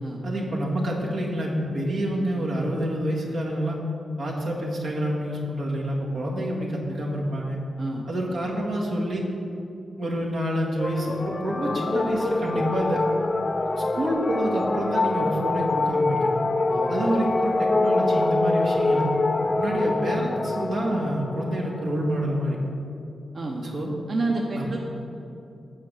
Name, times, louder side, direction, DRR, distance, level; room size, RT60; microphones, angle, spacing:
voice 1, 0.2-3.8 4.2-7.6 8.1-9.2 10.0-13.0 13.8-16.4 16.9-19.1 19.5-22.6 23.6-23.9 24.5-24.8, right 1 dB, 90° right, -4 dB, 1.8 m, -27 dB
sound 1, 10.8-22.6, left 2 dB, 35° left, 0.5 m, -25 dB
voice 2, 23.3-23.7 24.1-24.8, right 2 dB, 55° right, -1 dB, 0.9 m, -29 dB
9.0 x 4.8 x 7.4 m, 2.6 s
cardioid pair, 95°, 0 cm